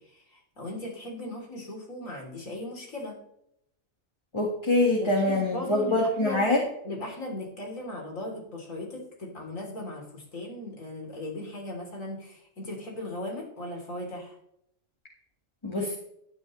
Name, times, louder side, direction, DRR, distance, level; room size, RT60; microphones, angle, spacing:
voice 1, 0.0-3.2 5.0-6.5 6.8-14.4, left 1 dB, 80° left, 0 dB, 3.9 m, -38 dB
voice 2, 4.3-6.6 15.6-15.9, left 2 dB, 20° left, -1 dB, 1.7 m, -24 dB
14.0 x 9.8 x 3.2 m, 0.75 s
omnidirectional pair, 1.4 m